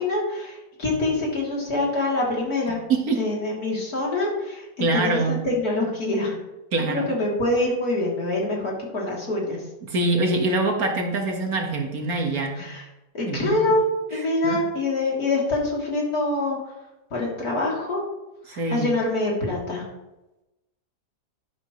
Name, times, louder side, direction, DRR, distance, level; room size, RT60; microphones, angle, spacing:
voice 1, 0.0-2.8 3.1-6.4 6.9-9.7 12.6-12.9 13.1-13.9 14.1-16.7 17.1-18.0 18.5-19.9, left 2 dB, 60° left, -3 dB, 3.5 m, -25 dB
voice 2, 2.9-3.2 4.8-5.4 6.7-7.1 9.8-12.7 13.3-13.6 14.4-14.6 18.5-18.9, right 2 dB, 60° right, 3 dB, 1.9 m, -24 dB
11.5 x 10.5 x 3.1 m, 0.98 s
omnidirectional pair, 1.8 m